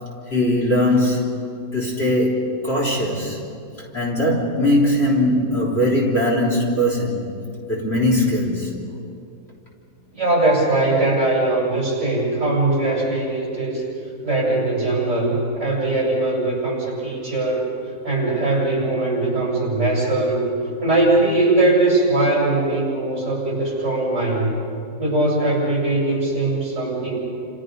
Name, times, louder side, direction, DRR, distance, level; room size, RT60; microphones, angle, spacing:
voice 1, 0.3-1.4 1.7-3.4 3.9-7.3 7.7-8.7, left 1 dB, 40° left, 3.7 m, -20 dB
voice 2, 10.1-13.8 14.2-17.7 18.0-20.4 20.8-24.5 25.0-27.2, right 2 dB, 45° right, 8.4 m, -20 dB
29.5 x 28.0 x 5.5 m
omnidirectional pair, 1.7 m